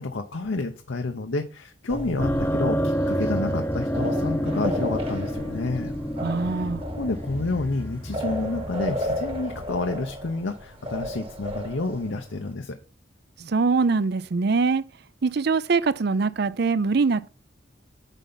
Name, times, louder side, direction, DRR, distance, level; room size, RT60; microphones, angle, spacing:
voice 1, 0.0-5.9 6.4-6.7 7.0-12.8, left 3 dB, 75° left, 0.8 m, -29 dB
sound 1, 1.9-12.5, equal, 30° right, 1.3 m, -34 dB
sound 2, 2.2-10.5, equal, 10° left, 0.7 m, -29 dB
voice 2, 6.2-6.8 13.4-14.9 15.2-17.3, right 4 dB, 55° right, 0.5 m, -23 dB
9.1 x 5.6 x 4.0 m
head